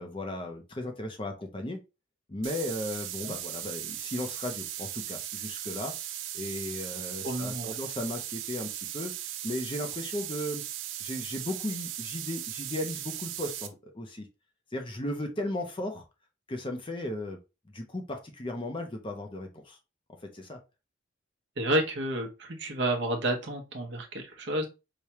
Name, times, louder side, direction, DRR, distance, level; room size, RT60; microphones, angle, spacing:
voice 1, 0.0-1.8 2.3-10.6 11.0-14.3 14.7-16.1 16.5-17.4 17.7-19.8 20.3-20.6, left 1 dB, 25° left, 4 dB, 0.5 m, -36 dB
sound 1, 2.4-13.7, right 12 dB, 75° right, 0.5 m, -38 dB
voice 2, 7.2-7.8 21.6-24.7, right 1 dB, 60° right, 3 dB, 0.9 m, -30 dB
4.8 x 2.2 x 2.9 m, 0.28 s
head